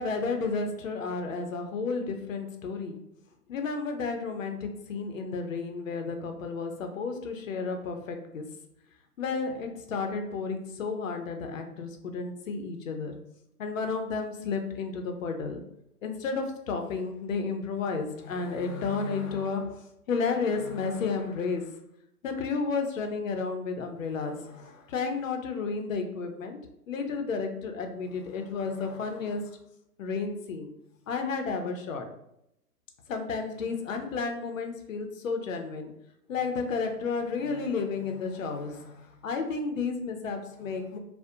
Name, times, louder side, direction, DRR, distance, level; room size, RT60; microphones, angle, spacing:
voice 1, 0.0-3.0 3.5-8.4 9.2-13.1 13.6-15.6 16.0-21.7 22.2-26.6 26.9-29.5 30.0-30.7 31.1-32.1 33.1-35.9 36.3-41.0, left 4 dB, 60° left, 5 dB, 0.5 m, -32 dB
2.6 x 2.0 x 2.4 m, 0.79 s
hypercardioid pair, 140°, 47 cm